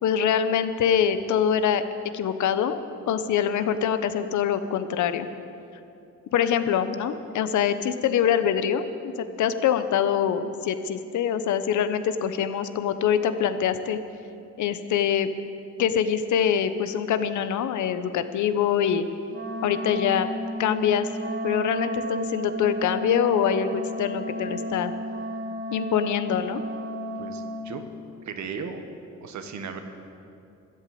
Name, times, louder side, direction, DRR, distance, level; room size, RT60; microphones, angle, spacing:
voice 1, 0.0-1.8 2.1-5.3 6.3-14.0 14.6-15.3 15.8-19.1 19.6-20.3 20.6-21.1 21.4-24.9 25.7-26.6, left 8 dB, 75° left, 11 dB, 1.0 m, -24 dB
Wind instrument woodwind instrument, 19.3-27.7, equal, 50° right, 3.2 m, -33 dB
voice 2, 27.2-27.8 28.2-28.8 29.2-29.8, right 6 dB, 70° right, 6 dB, 1.6 m, -36 dB
13.5 x 11.0 x 8.6 m, 2.6 s
cardioid pair, 90°, 30 cm